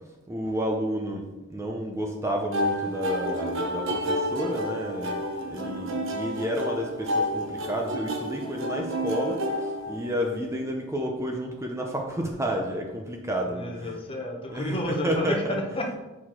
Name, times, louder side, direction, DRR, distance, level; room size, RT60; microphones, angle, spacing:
voice 1, 0.3-13.9 14.5-15.5, equal, 15° right, 1 dB, 0.6 m, -30 dB
sound 1, 2.5-10.5, equal, 65° right, 0.9 m, -30 dB
voice 2, 5.6-6.0 13.4-15.9, left 1 dB, 25° left, 1 dB, 0.9 m, -32 dB
6.5 x 4.3 x 4.4 m, 1.0 s
head